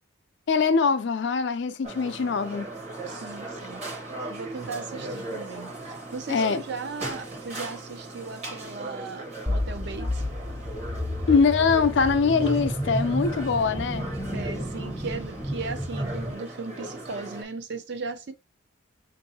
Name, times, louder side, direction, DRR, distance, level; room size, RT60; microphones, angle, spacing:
voice 1, 0.5-2.7 6.3-6.6 11.3-14.1, left 5 dB, 60° left, 0.4 m, -23 dB
sound 1, 1.8-17.4, right 2 dB, 35° right, 0.9 m, -38 dB
voice 2, 3.1-3.9 4.3-10.2 14.3-18.3, right 4 dB, 60° right, 0.5 m, -37 dB
sound 2, 9.5-16.3, equal, 5° left, 0.4 m, -31 dB
5.3 x 2.6 x 2.7 m
head